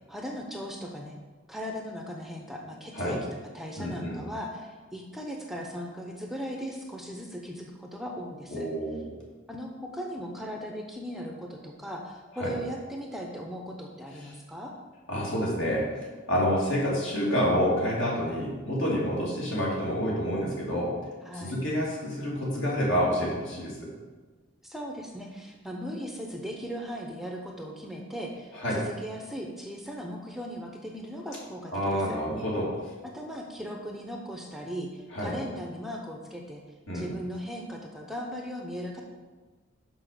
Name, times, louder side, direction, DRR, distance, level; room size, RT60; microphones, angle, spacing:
voice 1, 0.1-1.1 1.5-3.2 3.5-8.7 9.5-14.7 21.2-21.6 24.6-32.2 33.1-36.6 36.9-39.0, equal, ahead, 1 dB, 0.7 m, -38 dB
voice 2, 3.8-4.2 8.5-9.1 12.4-12.5 15.1-15.9 16.3-20.9 21.3-23.9 28.5-28.8 31.7-32.7 35.1-35.3 36.9-37.1, equal, 65° left, -4 dB, 2.6 m, -28 dB
6.1 x 5.4 x 6.8 m, 1.4 s
head